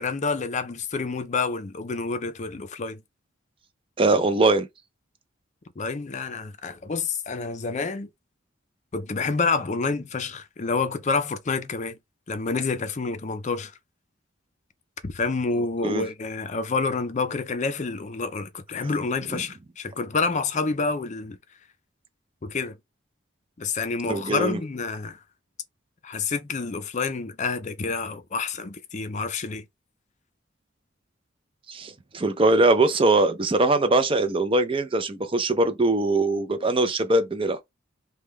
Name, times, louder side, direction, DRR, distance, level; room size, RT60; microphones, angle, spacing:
voice 1, 0.0-3.0 5.8-8.1 8.9-12.0 12.3-13.7 15.0-21.4 22.4-22.8 23.6-25.2 26.0-29.6, left 4 dB, 35° left, 0.5 m, -28 dB
voice 2, 4.0-4.7 15.8-16.0 19.3-19.4 24.0-24.6 31.7-37.6, right 2 dB, 25° right, 0.5 m, -22 dB
3.6 x 2.2 x 3.1 m
head